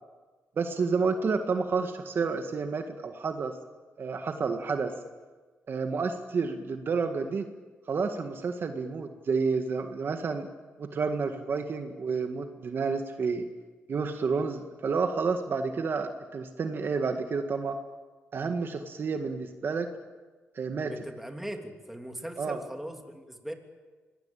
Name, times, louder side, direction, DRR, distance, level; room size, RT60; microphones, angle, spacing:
voice 1, 0.6-3.6 4.0-4.9 5.7-7.5 7.9-10.5 10.8-13.5 13.9-17.8 18.3-19.9 20.5-20.9 22.4-22.6, right 4 dB, 50° right, 6 dB, 1.8 m, -30 dB
voice 2, 20.8-23.5, right 1 dB, 5° right, 4 dB, 3.0 m, -39 dB
25.0 x 19.5 x 8.9 m, 1.3 s
cardioid pair, 100°, 5 cm